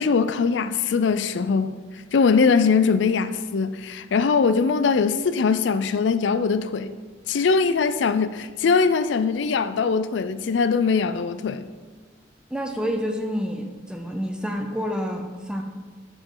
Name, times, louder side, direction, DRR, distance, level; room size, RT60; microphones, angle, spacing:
voice 1, 0.0-1.8 2.1-6.9 7.3-11.7, left 5 dB, 75° left, 0.4 m, -21 dB
voice 2, 12.5-15.6, equal, 5° right, 0.6 m, -28 dB
11.0 x 5.1 x 3.8 m
head